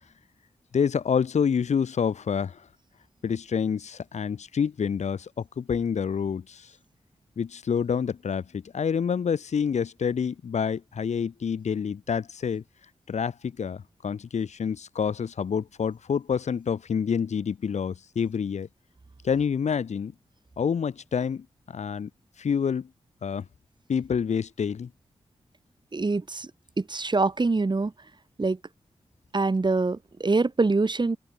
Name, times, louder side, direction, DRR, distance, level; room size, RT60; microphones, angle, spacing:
voice 1, 0.7-2.6 3.2-5.3 5.6-6.7 7.4-12.6 13.1-18.7 19.2-20.1 20.6-22.1 22.4-22.9 23.2-23.4 23.9-24.9, left 7 dB, 85° left, 6.7 m, -27 dB
voice 2, 25.9-26.5 26.8-27.9 28.4-28.6 29.3-31.2, right 3 dB, 40° right, 3.1 m, -24 dB
open air
cardioid pair, 50°, 12 cm